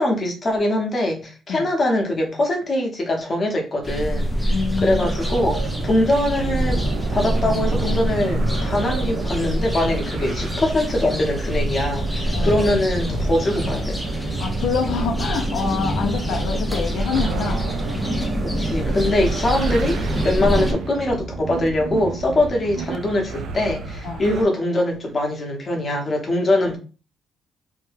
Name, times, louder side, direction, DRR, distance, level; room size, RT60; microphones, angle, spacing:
voice 1, 0.0-6.8 7.1-14.1 18.4-26.8, left 1 dB, 30° left, 0.8 m, -22 dB
sound 1, 3.8-20.7, equal, 5° left, 0.5 m, -25 dB
voice 2, 4.5-5.1 12.3-12.5 14.4-17.7 20.4-20.5 24.0-24.2, left 5 dB, 75° left, 0.4 m, -26 dB
sound 2, 5.0-24.5, right 4 dB, 70° right, 0.3 m, -31 dB
2.7 x 2.2 x 3.2 m
cardioid pair, 155°, 0 cm